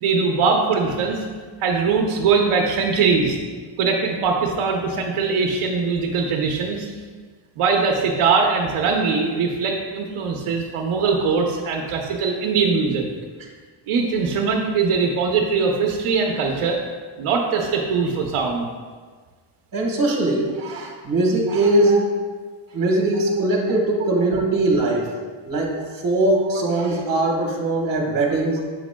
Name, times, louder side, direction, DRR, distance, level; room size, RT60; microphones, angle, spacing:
voice 1, 0.0-1.2 1.6-3.4 3.8-6.9 7.6-13.0 13.9-16.8 17.2-18.7 21.9-22.0, right 5 dB, 85° right, 1 dB, 0.8 m, -21 dB
voice 2, 19.7-22.1 22.7-25.1 25.4-28.7, right 2 dB, 45° right, 0 dB, 1.3 m, -21 dB
7.8 x 6.0 x 2.2 m, 1.5 s
cardioid pair, 135°, 49 cm